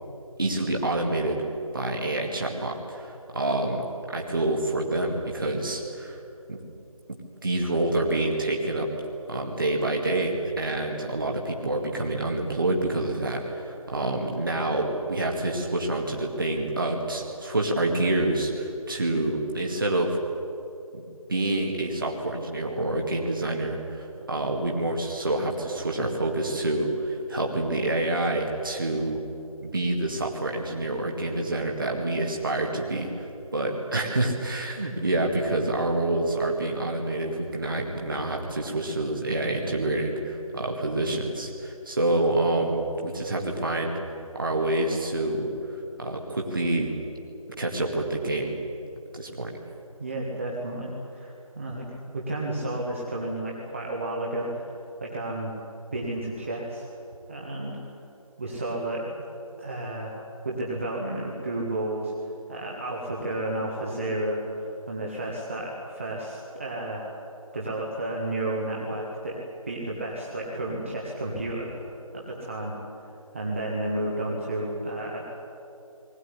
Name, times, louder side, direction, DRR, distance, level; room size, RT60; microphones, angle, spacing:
voice 1, 0.4-1.4 1.7-6.2 6.5-6.6 7.1-8.9 9.3-20.2 20.9-29.2 29.6-33.3 33.5-44.0 44.3-46.9 47.6-48.5 49.1-49.6, right 2 dB, 35° right, 0 dB, 2.1 m, -27 dB
voice 2, 50.0-51.9 52.1-54.7 55.0-55.5 55.9-56.9 57.3-57.8 58.4-59.1 59.6-60.1 60.4-67.0 67.5-69.4 69.7-71.7 72.1-72.7 73.0-75.2, right 1 dB, 20° right, -3 dB, 1.7 m, -32 dB
20.5 x 17.5 x 9.8 m, 2.8 s
figure-of-eight pair, 165°, 19 cm